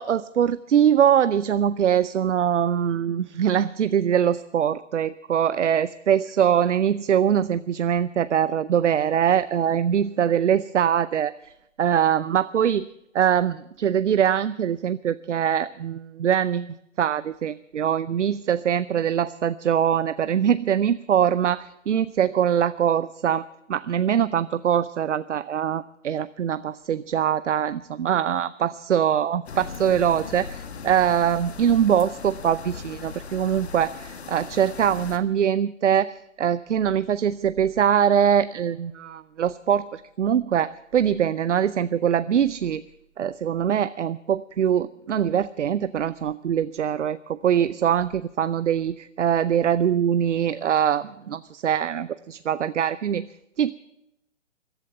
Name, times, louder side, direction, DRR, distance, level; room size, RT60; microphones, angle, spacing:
voice 1, 0.0-11.5 11.8-12.9 13.1-23.4 23.7-42.8 43.2-53.3 53.6-53.7, right 9 dB, 75° right, 16 dB, 0.6 m, -23 dB
sound 1, 29.5-35.2, left 6 dB, 60° left, 1.7 m, -39 dB
15.0 x 11.5 x 7.6 m, 0.84 s
figure-of-eight pair, 135°, 37 cm